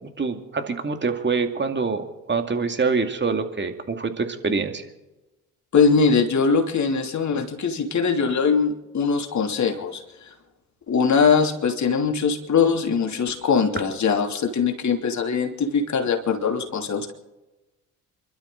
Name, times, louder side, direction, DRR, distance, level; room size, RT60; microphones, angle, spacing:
voice 1, 0.0-4.9, right 4 dB, 25° right, 6 dB, 2.5 m, -25 dB
voice 2, 5.7-10.0 10.9-17.1, left 5 dB, 45° left, 3 dB, 3.0 m, -21 dB
28.0 x 12.5 x 4.0 m, 1.1 s
hypercardioid pair, 55°, 41 cm